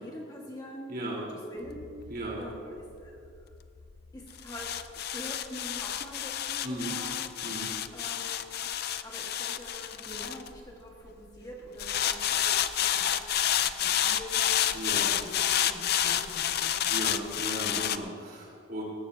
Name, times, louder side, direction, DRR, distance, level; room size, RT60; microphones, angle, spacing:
voice 1, 0.0-1.9 2.4-3.5 4.1-7.4 7.9-8.7 9.0-14.7 14.9-17.0, equal, 20° left, -2 dB, 1.6 m, -45 dB
voice 2, 0.9-1.2 2.1-2.4 6.6-6.9 7.4-7.7 14.7-15.0 16.9-18.8, right 1 dB, 45° right, -3 dB, 3.8 m, -36 dB
sound 1, 1.7-11.1 11.8-18.0, left 10 dB, 50° left, 0.5 m, -30 dB
18.5 x 15.5 x 2.8 m, 2.3 s
head